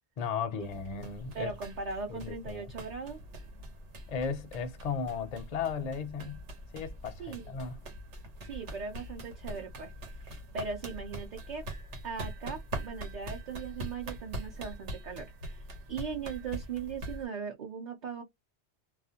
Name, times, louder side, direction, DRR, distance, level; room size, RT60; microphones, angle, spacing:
voice 1, 0.2-1.5 2.1-2.7 4.1-6.4 6.7-7.8, left 6 dB, 50° left, 0.5 m, -35 dB
sound 1, 0.6-17.3, right 1 dB, 90° right, 1.2 m, -43 dB
voice 2, 1.3-3.2 7.2-7.5 8.4-9.9 10.5-11.6 12.0-18.2, right 5 dB, 50° right, 0.6 m, -39 dB
2.4 x 2.1 x 2.7 m
omnidirectional pair, 1.1 m